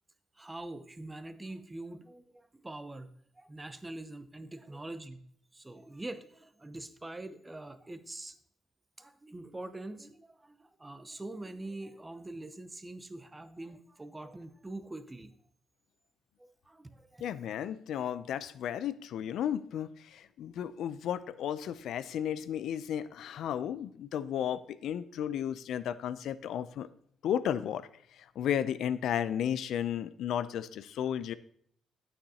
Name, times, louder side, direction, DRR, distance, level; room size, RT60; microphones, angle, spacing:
voice 1, 0.4-5.2 5.5-8.4 9.0-15.3 16.4-17.3, right 2 dB, 15° right, 11 dB, 0.7 m, -44 dB
voice 2, 17.2-26.9 27.2-27.9 28.4-31.3, left 9 dB, 75° left, 15 dB, 0.4 m, -33 dB
9.4 x 8.7 x 2.8 m, 0.65 s
cardioid pair, 90°, 0 cm